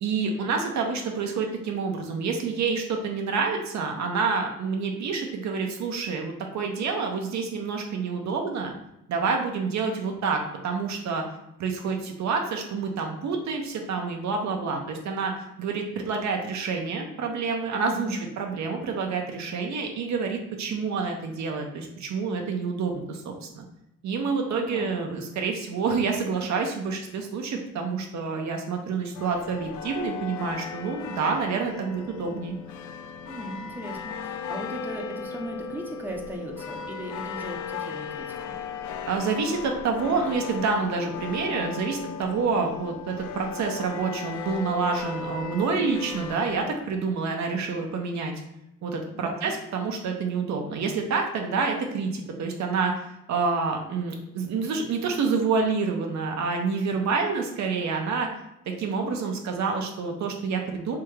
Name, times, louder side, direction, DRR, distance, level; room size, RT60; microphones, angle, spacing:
voice 1, 0.0-8.7 9.1-11.2 11.6-15.3 15.6-23.6 24.0-32.6 39.1-48.3 48.8-52.9 53.3-58.3 58.8-61.0, right 4 dB, 65° right, 2 dB, 0.8 m, -28 dB
voice 2, 17.9-18.2 24.5-24.9 33.3-38.6 49.1-49.5, right 1 dB, 5° right, 0 dB, 0.7 m, -37 dB
sound 1, 29.1-46.7, left 6 dB, 75° left, 0.5 m, -36 dB
3.5 x 3.3 x 3.2 m, 0.86 s
cardioid pair, 90°, 30 cm